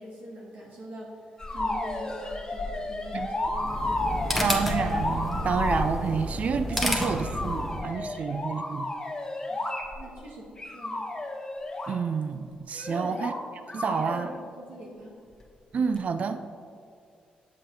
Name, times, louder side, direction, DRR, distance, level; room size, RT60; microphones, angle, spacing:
voice 1, 0.0-4.5 9.5-9.6 9.9-11.0 12.9-13.3 13.8-15.1, right 1 dB, 70° right, -4 dB, 1.5 m, -44 dB
sound 1, 1.4-5.9 6.7-10.2 10.6-11.9 12.7-13.4 13.7-14.3 16.0-16.1, left 2 dB, 20° left, 1.4 m, -32 dB
sound 2, 3.5-7.9, equal, ahead, 1.2 m, -31 dB
voice 2, 4.4-8.9 11.9-13.3 13.7-14.3 15.7-16.4, right 6 dB, 50° right, 10 dB, 0.3 m, -29 dB
7.5 x 6.7 x 3.2 m, 2.3 s
cardioid pair, 75°, 3 cm